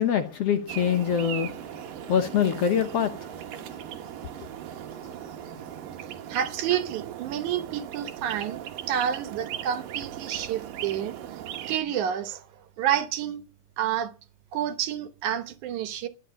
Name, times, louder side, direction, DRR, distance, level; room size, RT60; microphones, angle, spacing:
voice 1, 0.0-3.4 4.4-4.5, left 8 dB, 65° left, 1.7 m, -25 dB
sound 1, 0.7-11.8, right 11 dB, 90° right, 2.9 m, -38 dB
voice 2, 6.3-11.1 11.7-12.5 12.8-13.4 13.8-14.1 14.5-16.1, right 10 dB, 70° right, 2.4 m, -29 dB
12.5 x 9.9 x 6.2 m
omnidirectional pair, 3.8 m